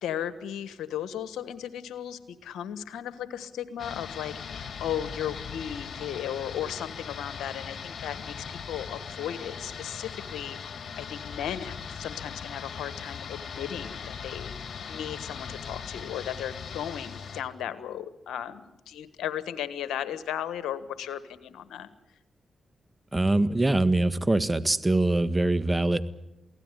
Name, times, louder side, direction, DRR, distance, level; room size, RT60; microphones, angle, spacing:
voice 1, 0.0-14.5 14.9-21.9, left 10 dB, 85° left, 12 dB, 1.3 m, -36 dB
sound 1, 3.8-17.4, left 6 dB, 65° left, 2.3 m, -39 dB
voice 2, 23.1-26.1, right 2 dB, 25° right, 12 dB, 1.6 m, -23 dB
23.0 x 17.0 x 9.8 m, 0.92 s
supercardioid pair, 40°, 0 cm